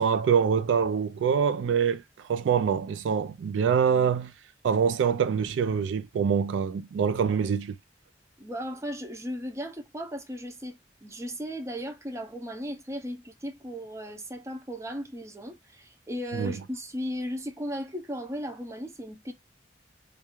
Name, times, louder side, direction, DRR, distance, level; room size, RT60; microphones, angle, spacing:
voice 1, 0.0-2.0 2.3-4.3 4.6-7.8 16.3-16.6, right 7 dB, 90° right, 0.3 m, -25 dB
voice 2, 8.4-19.3, equal, 15° right, 0.5 m, -36 dB
2.4 x 2.3 x 3.0 m
head